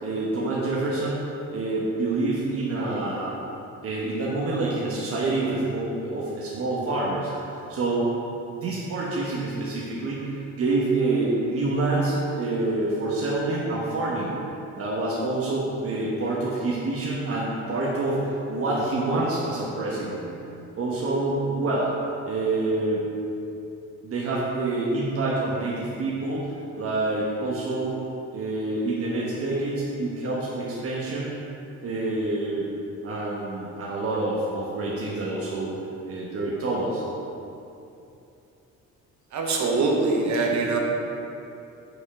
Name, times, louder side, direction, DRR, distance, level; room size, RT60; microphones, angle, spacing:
voice 1, 0.0-3.3 3.8-8.1 8.6-14.3 14.7-20.2 20.8-21.9 22.2-23.0 24.0-28.0 28.3-31.3 31.8-32.7 33.0-35.7 36.1-37.0, right 2 dB, 50° right, -5 dB, 1.2 m, -27 dB
voice 2, 39.3-40.8, right 3 dB, 65° right, 0 dB, 1.2 m, -23 dB
6.3 x 5.6 x 4.8 m, 2.8 s
cardioid pair, 90°, 30 cm